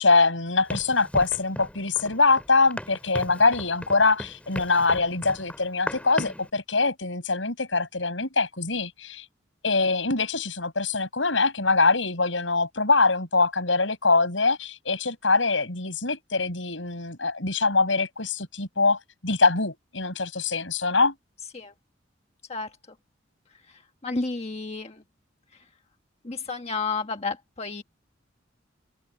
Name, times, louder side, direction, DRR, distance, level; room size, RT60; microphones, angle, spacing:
voice 1, 0.0-9.2 9.6-21.1, left 3 dB, 85° left, 7.4 m, -23 dB
Run, 0.7-6.5, equal, 5° left, 4.5 m, -37 dB
voice 2, 23.7-25.0 26.2-27.8, left 4 dB, 35° left, 1.4 m, -31 dB
open air
head